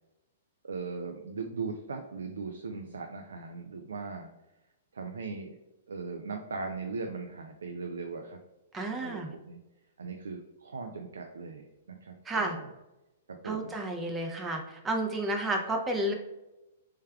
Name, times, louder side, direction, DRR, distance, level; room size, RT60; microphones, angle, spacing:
voice 1, 0.6-4.3 4.9-5.6 5.9-8.4 9.0-9.6 10.0-12.7 13.3-13.7, right 4 dB, 80° right, 4 dB, 0.3 m, -39 dB
voice 2, 8.7-9.3 12.3-12.6 13.4-16.1, right 1 dB, 15° right, 2 dB, 0.5 m, -31 dB
3.3 x 3.3 x 2.3 m, 0.96 s
hypercardioid pair, 120°, 0 cm